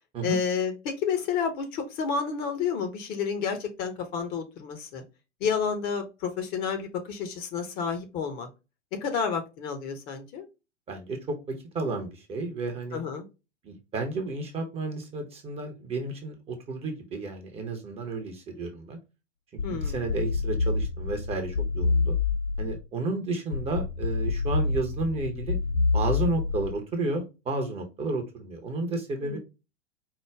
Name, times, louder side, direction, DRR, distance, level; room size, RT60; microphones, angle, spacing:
voice 1, 0.2-5.0 5.4-8.5 8.9-10.4 12.9-13.3 19.6-20.1 29.2-29.4, left 6 dB, 25° left, 6 dB, 0.7 m, -30 dB
voice 2, 10.9-13.0 13.6-19.0 19.8-22.1 22.6-25.6 25.9-29.4, right 3 dB, 15° right, 4 dB, 0.6 m, -32 dB
sound 1, 19.6-22.8 23.5-26.8, left 4 dB, 80° left, 0.8 m, -27 dB
4.6 x 2.1 x 3.3 m, 0.27 s
figure-of-eight pair, 100°, 37 cm